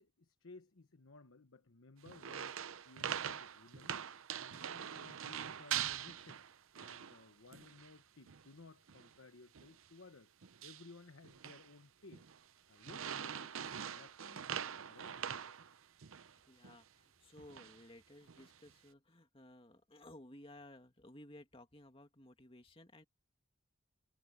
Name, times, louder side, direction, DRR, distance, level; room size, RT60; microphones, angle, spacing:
voice 1, 0.0-4.1 4.3-6.4 6.8-10.3 10.6-12.3 12.7-15.6, left 3 dB, 75° left, 1.1 m, -59 dB
sound 1, 2.1-7.2 7.5-7.9 8.3-8.5 8.9-9.2 9.5-9.8 10.4-10.9 11.2-11.7 12.1-12.4 12.8-16.3 16.6-16.8 17.4-17.8 18.3-18.7, right 9 dB, 75° right, 0.7 m, -43 dB
voice 2, 16.2-23.0, left 1 dB, 25° left, 2.3 m, -57 dB
head